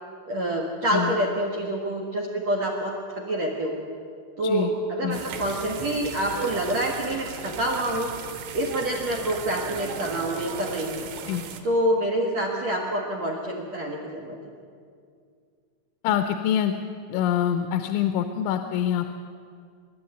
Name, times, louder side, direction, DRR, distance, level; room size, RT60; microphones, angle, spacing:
voice 1, 0.3-3.8 4.4-8.1 8.5-11.1 11.6-14.4, right 1 dB, 55° right, -1 dB, 2.0 m, -27 dB
sound 1, 5.1-11.6, right 6 dB, 85° right, 4.0 m, -37 dB
voice 2, 16.0-16.7 17.1-19.1, left 10 dB, 85° left, 7 dB, 3.2 m, -25 dB
26.5 x 11.5 x 9.3 m, 2.2 s
omnidirectional pair, 5.4 m